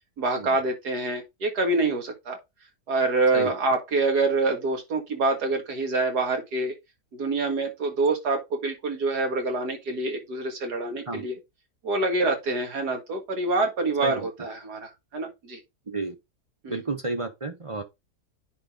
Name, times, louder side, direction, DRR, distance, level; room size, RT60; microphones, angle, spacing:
voice 1, 0.2-2.4 2.9-6.7 7.1-11.4 11.8-15.6 16.6-16.8, right 3 dB, 85° right, 2.4 m, -26 dB
voice 2, 16.7-17.8, right 3 dB, 35° right, 0.5 m, -31 dB
9.9 x 3.8 x 3.8 m
omnidirectional pair, 1.7 m